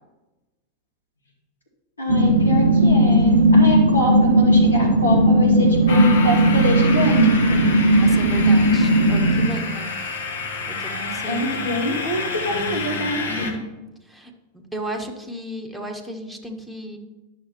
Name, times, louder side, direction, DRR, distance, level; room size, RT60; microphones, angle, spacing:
voice 1, 2.0-7.7 11.3-13.5, left 1 dB, 80° left, -1 dB, 2.1 m, -25 dB
sound 1, 2.1-9.5, right 1 dB, 70° right, 0.7 m, -16 dB
sound 2, 5.9-13.5, left 4 dB, 60° left, 1.0 m, -29 dB
voice 2, 7.8-10.0 10.7-11.9 12.5-13.7 14.0-17.0, right 1 dB, ahead, 2 dB, 1.2 m, -35 dB
10.5 x 6.4 x 3.0 m, 1.1 s
figure-of-eight pair, 90°, 0 cm